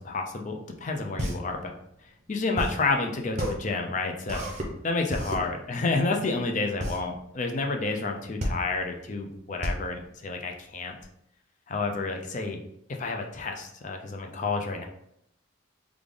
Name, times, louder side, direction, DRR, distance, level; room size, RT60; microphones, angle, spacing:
voice 1, 0.0-1.7 2.3-4.4 4.8-11.0 11.7-12.6 13.0-14.8, left 3 dB, 35° left, 3 dB, 0.5 m, -30 dB
sound 1, 0.8-11.0, equal, 35° right, 0.6 m, -33 dB
3.3 x 2.4 x 3.7 m, 0.74 s
head